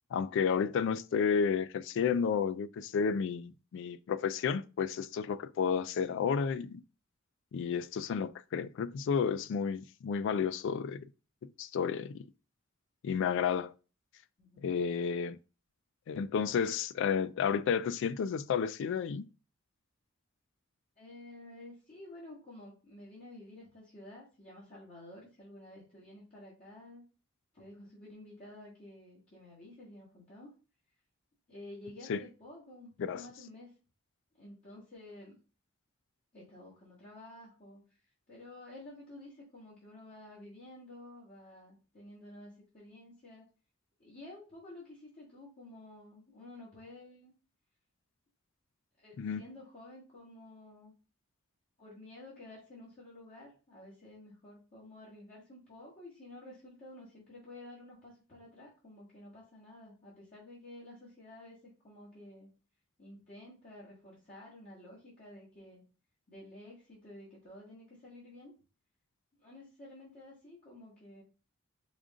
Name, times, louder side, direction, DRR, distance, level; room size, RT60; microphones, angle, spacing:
voice 1, 0.1-6.8 7.5-11.1 11.6-12.2 13.0-13.7 14.6-15.4 16.1-19.2 32.1-32.2 33.0-33.2 49.2-49.4, left 6 dB, 65° left, 0.3 m, -31 dB
voice 2, 21.0-27.0 27.5-30.5 31.5-33.7 34.4-35.3 36.3-37.8 38.3-43.5 44.0-47.3 49.0-50.9 51.8-62.5 63.0-65.8 66.3-68.5 69.4-71.2, left 1 dB, 40° left, 1.7 m, -51 dB
5.0 x 2.4 x 3.6 m
head